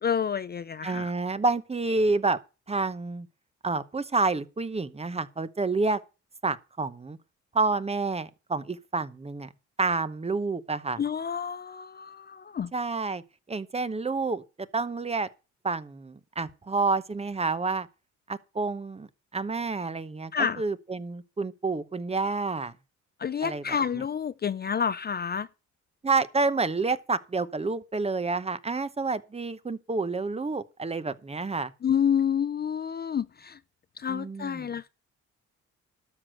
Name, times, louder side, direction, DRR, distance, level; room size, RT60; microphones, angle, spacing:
voice 1, 0.0-1.1 11.0-12.7 20.3-20.6 23.2-25.5 31.8-33.6 34.0-34.9, left 7 dB, 35° left, 0.5 m, -29 dB
voice 2, 0.8-2.4 2.7-3.3 3.6-6.0 6.4-7.2 7.5-9.5 9.8-11.0 12.7-13.2 13.5-14.4 14.7-15.3 15.6-17.9 18.3-22.7 23.4-23.6 26.0-31.7 34.1-34.7, right 3 dB, 20° right, 0.9 m, -29 dB
12.5 x 6.1 x 6.4 m
cardioid pair, 90°, 30 cm